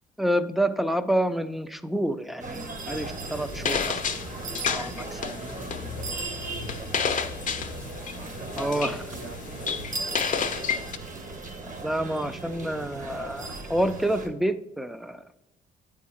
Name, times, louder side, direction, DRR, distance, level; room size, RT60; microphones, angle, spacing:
voice 1, 0.2-4.0 4.7-4.9 8.6-9.0 11.8-15.4, right 1 dB, ahead, 11 dB, 0.4 m, -28 dB
sound 1, 2.4-14.3, right 3 dB, 40° right, 1.2 m, -37 dB
sound 2, 2.9-11.0, left 6 dB, 40° left, 0.6 m, -32 dB
voice 2, 4.5-7.7 8.2-10.9, right 3 dB, 60° right, 4 dB, 1.2 m, -46 dB
8.4 x 3.7 x 4.2 m, 0.92 s
cardioid pair, 90°, 20 cm